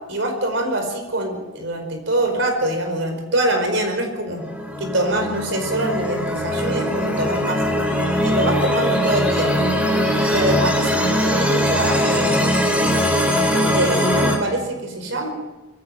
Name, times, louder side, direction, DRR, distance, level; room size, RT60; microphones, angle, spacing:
voice 1, 0.1-4.4 4.8-7.6 8.2-9.5 10.1-12.5 13.7-15.3, right 1 dB, 60° right, 5 dB, 5.0 m, -24 dB
sound 1, 4.4-14.4, equal, 5° right, 3.3 m, -21 dB
23.0 x 15.5 x 7.8 m, 1.1 s
head